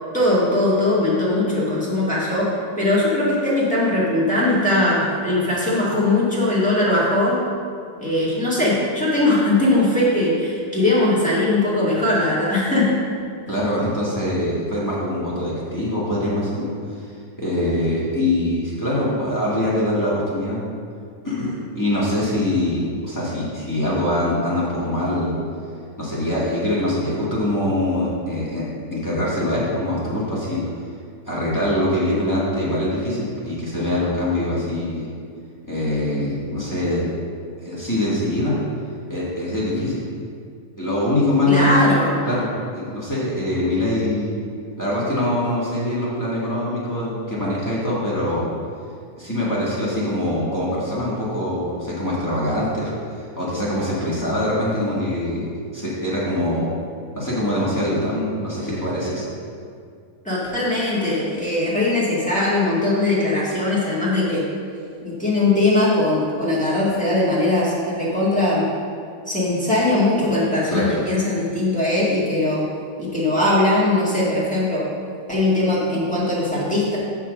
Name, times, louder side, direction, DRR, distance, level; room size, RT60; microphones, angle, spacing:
voice 1, 0.1-2.5 2.8-7.4 8.0-12.9 41.5-42.2 60.2-64.4 65.0-68.6 69.2-72.6 73.0-74.8 75.3-77.0, left 2 dB, 5° left, -9 dB, 0.9 m, -20 dB
voice 2, 13.5-17.0 17.4-20.6 21.2-25.4 26.0-28.6 28.9-30.6 31.3-35.1 35.7-37.0 37.6-38.6 39.1-40.0 40.8-42.0 42.2-42.5 42.7-44.4 44.8-48.4 49.2-56.7 57.1-59.2 70.7-71.0, left 1 dB, 25° left, -9 dB, 0.3 m, -23 dB
7.2 x 5.7 x 6.3 m, 2.3 s
omnidirectional pair, 3.7 m